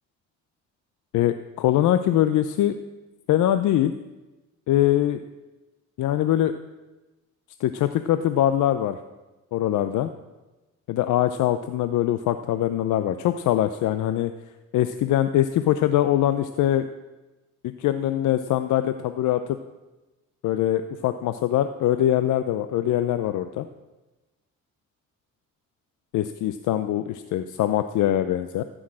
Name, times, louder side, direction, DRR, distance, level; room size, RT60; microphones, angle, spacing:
voice 1, 1.1-2.8 3.3-3.9 4.7-5.2 6.0-6.5 7.6-9.0 9.5-10.1 10.9-14.3 14.7-16.8 17.8-19.4 20.4-23.7 26.1-28.6, left 12 dB, 80° left, 10 dB, 0.6 m, -22 dB
14.5 x 6.4 x 7.5 m, 1.1 s
cardioid pair, 90°, 30 cm